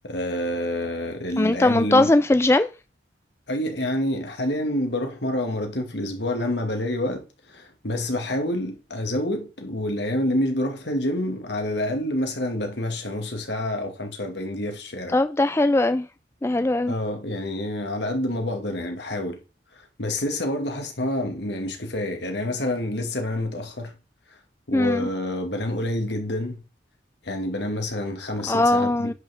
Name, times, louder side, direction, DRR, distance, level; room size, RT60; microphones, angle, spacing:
voice 1, 0.0-2.1 3.5-15.2 16.9-19.4 19.7-24.0 24.7-26.6 27.2-29.1, left 1 dB, 75° left, 2.0 m, -28 dB
voice 2, 1.4-2.7 15.1-16.1 16.4-17.0 24.7-25.1 28.5-29.1, left 2 dB, 15° left, 0.3 m, -20 dB
10.5 x 5.8 x 3.5 m
head